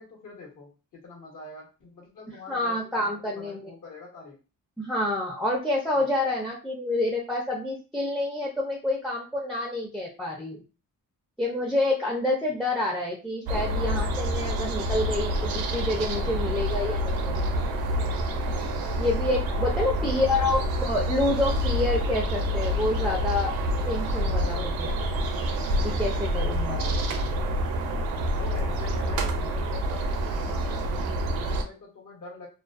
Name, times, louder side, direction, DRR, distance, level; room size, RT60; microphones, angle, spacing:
voice 1, 0.0-4.4 5.9-6.1 19.5-21.0 26.7-27.4 28.3-32.5, left 3 dB, 60° left, -2 dB, 1.1 m, -45 dB
voice 2, 2.5-3.7 4.8-10.6 11.4-17.7 19.0-23.5 23.9-25.0 25.8-26.8, left 1 dB, ahead, -1 dB, 0.5 m, -28 dB
sound 1, 13.5-31.6, equal, 85° right, 0.6 m, -27 dB
2.4 x 2.2 x 2.4 m, 0.33 s
cardioid pair, 105°, 35 cm